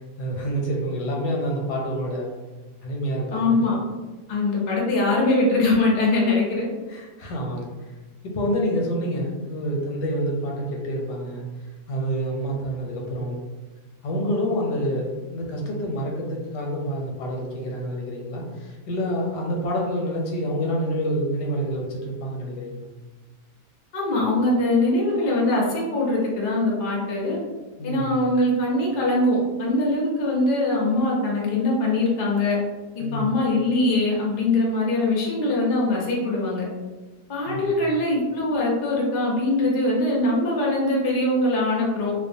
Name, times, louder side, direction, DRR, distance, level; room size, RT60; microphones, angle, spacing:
voice 1, 0.2-2.3 2.8-3.6 6.9-7.7 8.2-11.5 11.9-13.4 14.0-22.9 27.8-28.3 33.0-33.3 37.5-37.9, equal, 85° left, -1 dB, 1.2 m, -27 dB
voice 2, 3.3-3.8 4.3-6.7 23.9-27.4 27.8-32.6 33.0-36.7 37.3-42.1, left 2 dB, 65° left, -3 dB, 0.5 m, -22 dB
2.8 x 2.1 x 2.6 m, 1.2 s
omnidirectional pair, 1.8 m